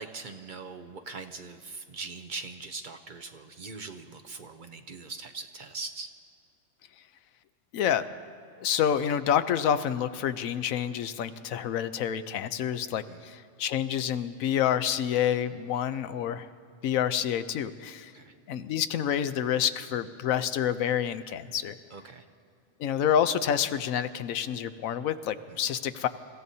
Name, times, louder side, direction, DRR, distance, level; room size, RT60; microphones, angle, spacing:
voice 1, 0.0-6.1 13.1-13.2 18.1-18.3 21.9-22.2 25.5-25.6, right 3 dB, 50° right, 6 dB, 0.7 m, -41 dB
voice 2, 7.7-8.0 8.6-16.5 16.8-18.1 18.5-21.7 22.8-26.1, left 9 dB, 80° left, 11 dB, 1.1 m, -28 dB
28.5 x 15.5 x 2.7 m, 2.5 s
omnidirectional pair, 1.4 m